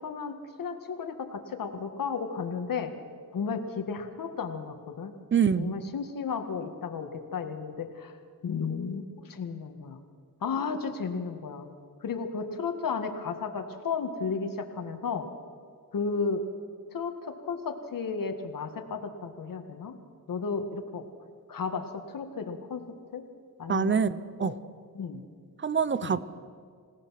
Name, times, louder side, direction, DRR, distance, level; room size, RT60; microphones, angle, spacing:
voice 1, 0.0-2.9 3.3-5.1 5.6-8.1 8.4-10.0 10.4-11.7 12.0-15.3 15.9-16.5 16.9-20.0 20.3-21.0 21.5-22.9 23.1-23.3 23.6-24.0 24.4-24.5 25.0-25.2 26.0-26.2, left 5 dB, 65° left, 6 dB, 1.9 m, -33 dB
voice 2, 5.3-5.7 23.7-24.5 25.6-26.2, right 6 dB, 35° right, 16 dB, 0.7 m, -25 dB
27.0 x 17.5 x 5.9 m, 2.1 s
wide cardioid pair, 130°, 35 cm